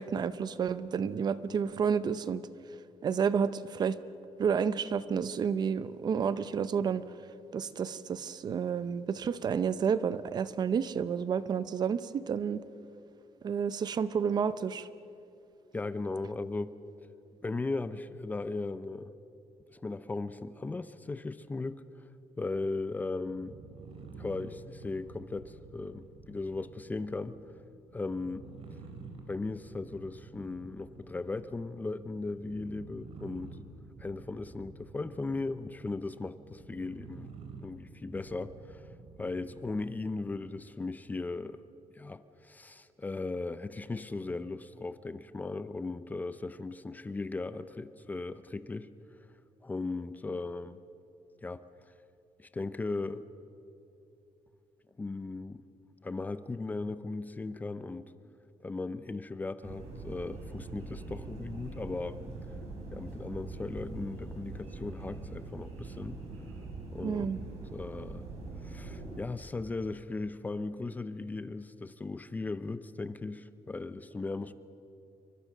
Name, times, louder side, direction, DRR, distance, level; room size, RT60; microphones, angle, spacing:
voice 1, 0.0-2.4 3.0-4.0 4.4-7.0 7.5-12.6 13.4-14.9 67.0-67.4, right 7 dB, 40° right, 14 dB, 0.7 m, -30 dB
voice 2, 15.7-16.7 17.4-19.1 19.7-21.8 22.4-23.6 24.2-27.4 27.9-28.5 29.3-33.6 34.0-37.3 37.6-38.8 39.2-41.6 41.9-48.9 49.6-50.8 51.4-51.6 52.4-53.3 55.0-55.6 56.0-58.1 58.6-62.2 62.9-66.2 66.9-67.3 67.7-68.2 68.6-74.5, left 3 dB, 15° left, 13 dB, 0.6 m, -37 dB
sound 1, 23.2-40.5, right 4 dB, 60° right, 3.6 m, -50 dB
sound 2, 59.6-69.2, right 3 dB, 80° right, 6.3 m, -43 dB
28.0 x 24.0 x 6.6 m, 2.7 s
cardioid pair, 165°, 11 cm